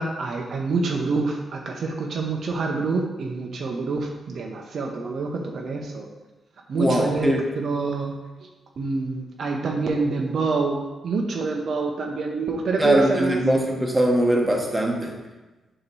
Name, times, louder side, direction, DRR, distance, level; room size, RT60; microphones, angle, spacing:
voice 1, 0.0-6.1 6.7-8.1 8.8-13.4, right 4 dB, 60° right, 1 dB, 0.7 m, -26 dB
voice 2, 6.8-7.4 12.8-15.1, right 1 dB, 15° right, 0 dB, 1.0 m, -21 dB
6.8 x 2.9 x 5.4 m, 1.1 s
cardioid pair, 105°, 0 cm